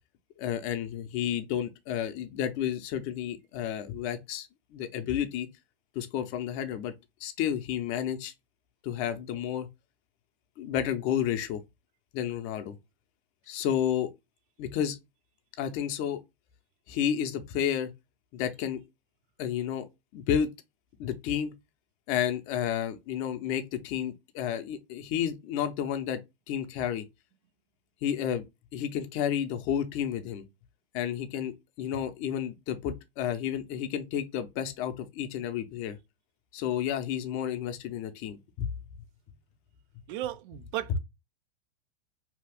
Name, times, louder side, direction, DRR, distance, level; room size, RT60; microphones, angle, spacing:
voice 1, 0.4-5.5 5.9-6.9 7.2-8.3 8.8-9.7 10.6-11.6 12.1-12.8 13.5-14.1 14.6-15.0 15.6-16.2 16.9-17.9 18.3-18.8 19.4-19.9 20.1-20.5 21.0-21.5 22.1-26.2 26.5-27.0 28.0-28.4 28.7-30.4 30.9-36.0 36.5-38.7, left 9 dB, 40° left, 0.7 m, -31 dB
voice 2, 40.1-41.0, right 14 dB, 50° right, 0.5 m, -35 dB
2.9 x 2.4 x 3.4 m
hypercardioid pair, 115°, 33 cm